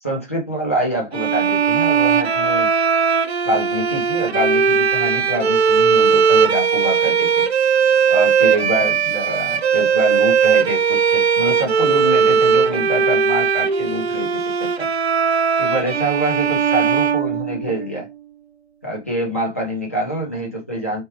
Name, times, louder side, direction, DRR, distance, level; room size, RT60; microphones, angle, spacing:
voice 1, 0.0-2.7 3.4-7.5 8.1-14.3 14.6-14.9 15.6-18.1 18.8-21.0, right 1 dB, 10° left, 0.5 m, -25 dB
sound 1, 1.1-18.0, right 6 dB, 60° right, 0.6 m, -18 dB
4.4 x 2.3 x 3.1 m
figure-of-eight pair, 155°, 36 cm